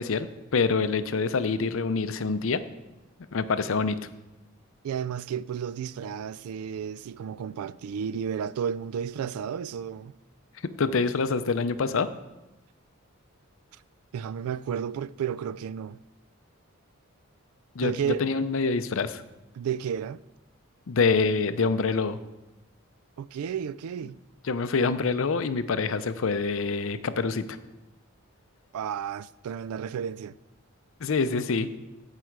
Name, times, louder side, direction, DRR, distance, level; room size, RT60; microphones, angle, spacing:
voice 1, 0.0-2.6 3.3-4.0 10.8-12.1 17.8-19.2 20.9-22.2 24.5-27.6 31.0-31.7, left 4 dB, 65° left, 0.5 m, -26 dB
voice 2, 4.8-10.1 14.1-16.0 17.8-18.2 19.6-20.2 23.2-24.2 28.7-30.4, right 8 dB, 85° right, 0.3 m, -32 dB
14.5 x 4.8 x 4.6 m
head